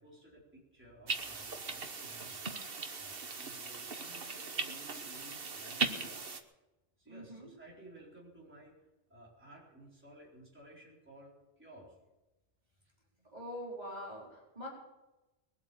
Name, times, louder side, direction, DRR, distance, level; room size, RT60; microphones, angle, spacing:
voice 1, 0.0-2.4 2.9-6.3 7.0-8.7 9.1-12.0, right 1 dB, 10° right, -5 dB, 4.3 m, -56 dB
sound 1, 1.1-6.4, right 4 dB, 55° right, 1.4 m, -39 dB
voice 2, 7.1-7.5 13.3-14.7, equal, 35° right, -4 dB, 4.3 m, -44 dB
21.5 x 8.2 x 7.1 m, 1.0 s
omnidirectional pair, 1.2 m